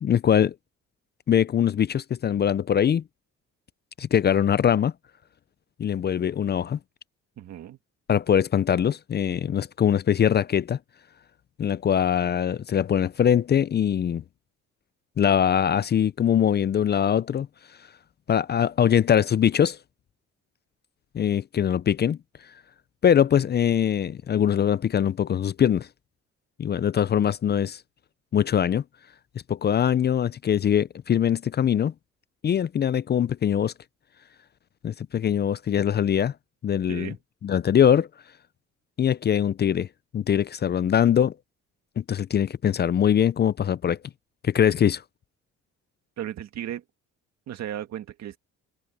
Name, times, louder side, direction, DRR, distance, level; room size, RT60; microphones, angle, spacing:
voice 1, 0.0-0.5 1.3-3.0 4.0-4.9 5.8-6.8 8.1-10.8 11.6-14.2 15.2-17.5 18.3-19.8 21.1-22.2 23.0-25.9 26.6-27.8 28.3-28.8 29.5-31.9 32.4-33.7 34.8-36.3 36.6-37.1 37.4-38.1 39.0-39.9 40.1-41.3 42.0-44.0 44.4-45.0, left 9 dB, 35° left, 0.5 m, -22 dB
voice 2, 7.4-7.8 36.9-37.2 46.2-46.8 47.5-48.4, right 11 dB, 65° right, 2.1 m, -35 dB
cardioid pair, 105°, 29 cm